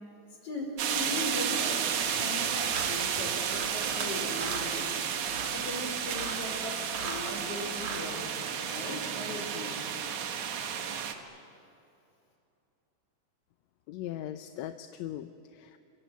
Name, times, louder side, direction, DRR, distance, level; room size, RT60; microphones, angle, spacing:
voice 1, 0.4-4.9 5.5-9.8, left 1 dB, 55° left, 1 dB, 6.0 m, -39 dB
sound 1, 0.8-11.1, right 8 dB, 80° right, 2.9 m, -32 dB
sound 2, 1.9-2.1 2.7-2.9 3.5-4.1 4.3-4.7 5.2-5.5 6.1-6.4 6.8-7.3 7.7-8.1, right 4 dB, 60° right, 3.8 m, -39 dB
voice 2, 13.9-15.8, left 12 dB, 75° left, 9 dB, 1.9 m, -39 dB
27.5 x 23.5 x 8.3 m, 2.8 s
omnidirectional pair, 3.3 m